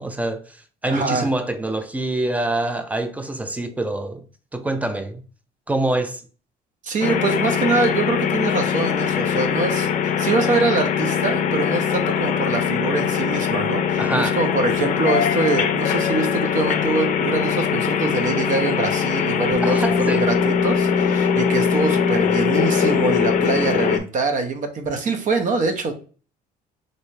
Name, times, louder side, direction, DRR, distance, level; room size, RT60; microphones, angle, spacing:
voice 1, 0.0-4.2 4.5-5.2 5.7-6.2 14.0-14.4 19.6-20.3, right 2 dB, 10° right, 0.4 m, -25 dB
voice 2, 0.9-1.3 6.8-9.9 10.2-25.9, right 4 dB, 50° right, 0.7 m, -24 dB
sound 1, 7.0-24.0, left 7 dB, 50° left, 0.5 m, -21 dB
3.2 x 2.7 x 3.1 m
cardioid pair, 110°, 17 cm